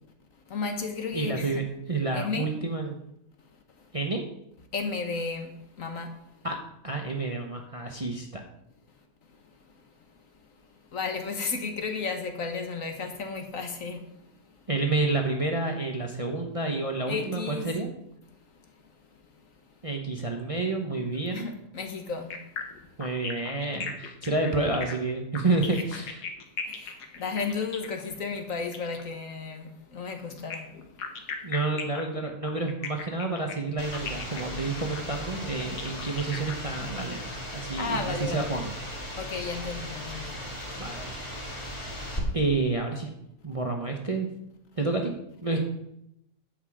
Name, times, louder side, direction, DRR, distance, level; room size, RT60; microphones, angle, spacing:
voice 1, 0.5-1.6 2.1-2.5 4.7-5.5 5.8-6.1 10.9-14.0 17.1-17.7 21.3-22.4 26.7-30.6 37.8-38.5 39.2-40.3, left 4 dB, 55° left, 1.5 m, -33 dB
voice 2, 1.1-1.6 1.9-3.0 3.9-4.2 6.4-8.4 14.7-17.9 19.8-21.5 23.0-26.3 31.4-38.6 40.8-41.1 42.3-43.1 43.4-44.3 44.8-45.6, right 3 dB, 25° right, 0.9 m, -29 dB
sound 1, 22.3-29.1 30.3-37.0, left 6 dB, 75° left, 1.8 m, -38 dB
sound 2, 33.8-42.2, equal, 15° left, 2.0 m, -37 dB
9.9 x 7.9 x 4.9 m
omnidirectional pair, 1.8 m